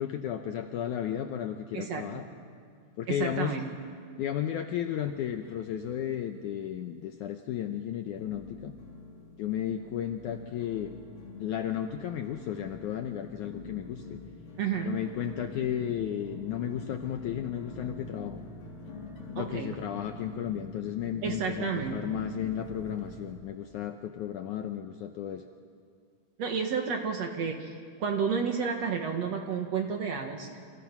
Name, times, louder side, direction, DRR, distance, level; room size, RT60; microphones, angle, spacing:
voice 1, 0.0-2.3 3.0-3.6 4.2-8.7 9.4-11.0 11.4-14.2 14.8-18.4 19.3-25.4, left 10 dB, 75° left, 6 dB, 1.8 m, -34 dB
voice 2, 1.7-2.1 3.1-3.7 14.6-15.0 19.4-19.8 21.2-22.1 26.4-27.7 28.0-30.6, right 6 dB, 55° right, 4 dB, 2.0 m, -31 dB
sound 1, 5.0-6.0 6.2-6.9 7.4-7.5 8.2-23.4, left 2 dB, 55° left, 4.6 m, -45 dB
29.5 x 25.5 x 6.0 m, 2.1 s
omnidirectional pair, 4.4 m